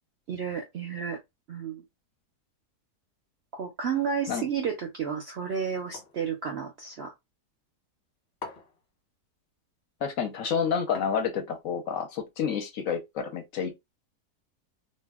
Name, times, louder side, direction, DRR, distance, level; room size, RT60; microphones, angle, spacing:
voice 1, 0.3-1.2 1.5-1.8 3.5-7.1, right 7 dB, 65° right, 0.6 m, -32 dB
sound 1, 5.9-6.3 8.4-8.9 10.9-11.5, left 4 dB, 40° left, 1.1 m, -43 dB
voice 2, 10.0-13.8, left 6 dB, 65° left, 1.0 m, -29 dB
2.7 x 2.2 x 3.4 m
omnidirectional pair, 1.7 m